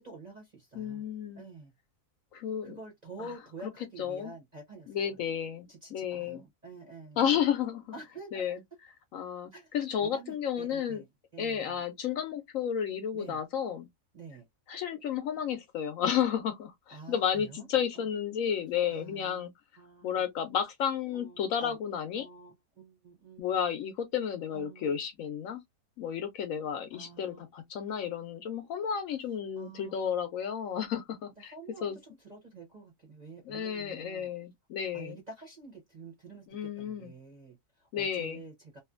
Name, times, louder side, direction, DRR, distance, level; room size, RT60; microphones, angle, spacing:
voice 1, 0.0-1.1 1.4-1.7 2.6-5.0 5.7-7.2 7.9-8.5 9.5-9.7 10.0-11.1 11.3-11.8 13.1-13.4 14.1-14.5 16.9-17.7 18.0-18.1 18.9-19.5 19.8-20.2 21.1-21.8 22.2-23.6 24.5-24.9 26.9-27.4 29.6-30.1 31.4-34.3 34.9-38.8, right 3 dB, 40° right, 0.7 m, -48 dB
voice 2, 0.7-1.4 2.3-2.8 4.0-4.3 4.9-6.4 7.2-7.8 8.3-8.6 9.1-11.0 11.4-13.9 14.7-19.5 20.0-22.3 23.4-25.6 26.0-31.5 31.8-32.0 33.4-35.2 36.5-37.1 37.9-38.4, left 8 dB, 70° left, 0.9 m, -32 dB
2.5 x 2.4 x 2.4 m
omnidirectional pair, 1.6 m